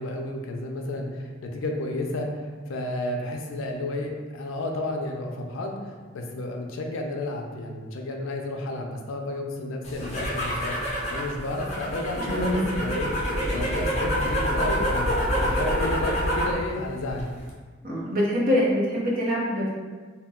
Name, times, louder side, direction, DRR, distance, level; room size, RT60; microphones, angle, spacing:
voice 1, 0.0-10.8 11.1-17.3, left 2 dB, 90° left, 2 dB, 0.4 m, -32 dB
sound 1, 9.8-16.6 16.9-17.5, equal, 35° left, 0.5 m, -27 dB
voice 2, 12.2-12.7 17.8-19.7, equal, 45° right, -6 dB, 0.8 m, -24 dB
2.2 x 2.1 x 3.5 m, 1.4 s
head